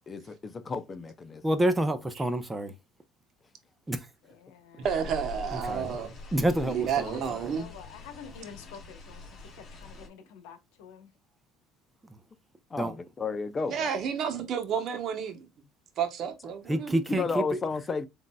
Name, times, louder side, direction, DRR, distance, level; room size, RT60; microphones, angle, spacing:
voice 1, 0.1-1.4 12.7-13.9 17.1-18.1, left 4 dB, 25° left, 0.5 m, -32 dB
voice 2, 1.4-2.7 3.9-4.0 5.5-6.0 6.3-7.4 12.8-12.9 16.7-17.4, right 1 dB, 10° right, 0.7 m, -28 dB
voice 3, 4.2-4.9 7.0-11.1, left 7 dB, 85° left, 1.0 m, -48 dB
sound 1, 4.8-10.1, left 4 dB, 45° left, 3.0 m, -44 dB
voice 4, 4.8-6.1 6.6-7.7 13.7-15.5 16.0-17.3, right 7 dB, 50° right, 1.0 m, -31 dB
7.1 x 2.6 x 2.2 m
supercardioid pair, 115°, 0 cm